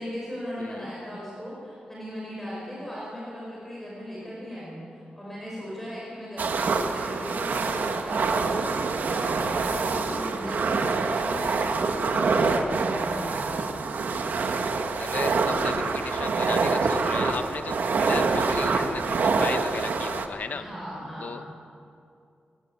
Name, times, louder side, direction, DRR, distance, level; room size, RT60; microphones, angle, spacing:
voice 1, 0.0-13.8 20.5-21.4, equal, 5° left, -6 dB, 6.0 m, -38 dB
voice 2, 0.6-0.9 15.0-20.6 21.2-21.4, left 5 dB, 60° left, 9 dB, 1.1 m, -35 dB
sound 1, 6.4-20.3, right 4 dB, 70° right, 1.6 m, -26 dB
23.0 x 19.0 x 8.5 m, 2.4 s
wide cardioid pair, 180°, 3 cm